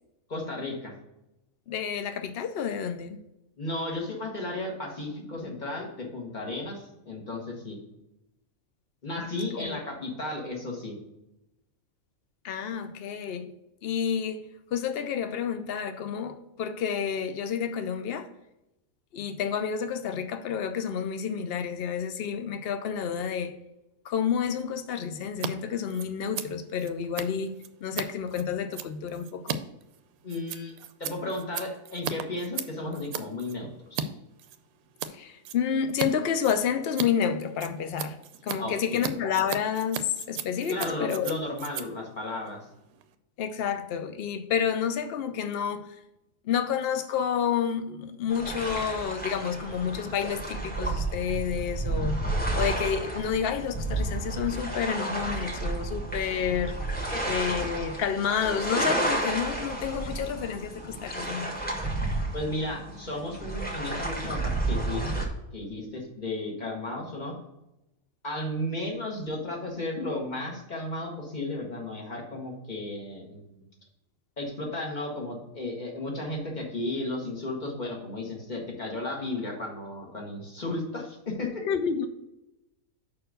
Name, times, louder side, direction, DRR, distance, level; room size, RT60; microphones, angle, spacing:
voice 1, 0.3-0.9 3.6-7.8 9.0-10.9 30.2-30.7 31.0-34.1 38.6-39.0 40.7-42.6 57.1-57.2 62.3-65.2 65.5-67.3 68.2-73.7 74.4-81.5, left 2 dB, 30° left, 0 dB, 1.7 m, -34 dB
voice 2, 1.7-3.2 9.5-9.8 12.4-13.5 13.8-18.3 19.1-23.5 24.0-29.6 35.1-41.3 43.4-46.0 46.4-52.2 52.5-56.8 57.3-61.5 81.7-82.1, left 7 dB, 85° left, 9 dB, 0.5 m, -30 dB
Scissors, 25.3-25.5 25.8-34.1 34.4-35.1 35.4-36.1 36.4-43.1, right 8 dB, 70° right, 1.0 m, -37 dB
sound 1, 48.3-65.3, right 2 dB, 5° left, 1.4 m, -31 dB
5.6 x 4.5 x 6.4 m, 0.89 s
omnidirectional pair, 1.7 m